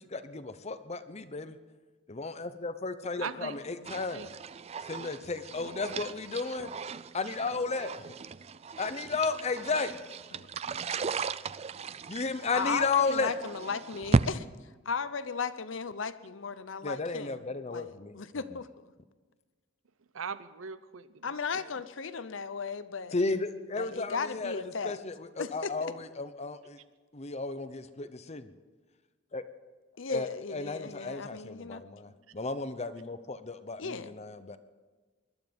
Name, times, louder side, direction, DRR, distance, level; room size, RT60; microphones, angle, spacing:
voice 1, 0.1-1.6 2.1-4.3 4.8-6.7 7.1-7.9 8.8-9.9 12.1-13.3 16.8-18.4 23.1-26.8 27.1-28.5 29.3-29.4 30.1-34.6, left 4 dB, 35° left, 11 dB, 0.8 m, -33 dB
voice 2, 3.2-3.6 4.1-4.3 20.1-21.7, right 6 dB, 85° right, 14 dB, 0.7 m, -40 dB
sound 1, 3.8-14.3, right 4 dB, 30° right, 0.4 m, -35 dB
voice 3, 12.5-14.5 14.9-17.4 17.7-18.9 21.2-23.2 23.8-25.0 25.4-25.9 30.0-31.8 33.8-34.1, left 5 dB, 70° left, 13 dB, 0.8 m, -36 dB
21.0 x 12.0 x 5.3 m, 1.4 s
head